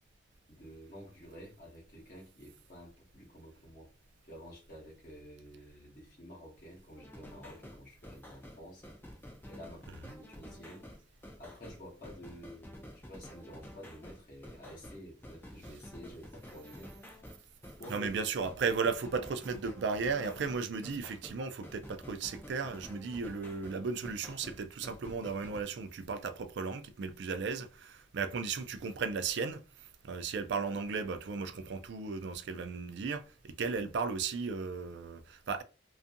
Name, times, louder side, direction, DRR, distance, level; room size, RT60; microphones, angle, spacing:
voice 1, 0.5-3.9 4.3-8.8 9.5-10.9 11.4-16.9 17.8-18.3, equal, 50° left, 1.0 m, -50 dB
sound 1, 7.0-25.6, equal, 10° left, 0.3 m, -50 dB
voice 2, 17.9-35.6, right 5 dB, 65° right, 0.3 m, -35 dB
2.6 x 2.3 x 2.5 m
head